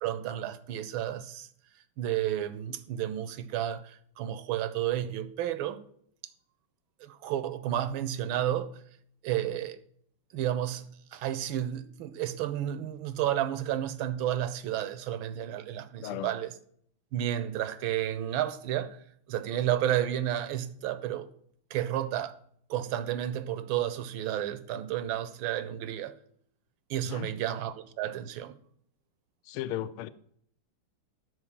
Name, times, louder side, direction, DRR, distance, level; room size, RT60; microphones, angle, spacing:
voice 1, 0.0-1.5 2.0-5.8 7.0-8.7 9.2-9.8 10.3-10.8 11.1-16.5 17.1-19.0 19.3-21.3 21.7-22.4 22.7-26.2 26.9-28.6, right 11 dB, 75° right, 1.4 m, -31 dB
voice 2, 16.0-16.3 27.0-27.3 29.4-30.1, left 12 dB, 85° left, 1.5 m, -35 dB
9.7 x 4.6 x 7.2 m
omnidirectional pair, 2.4 m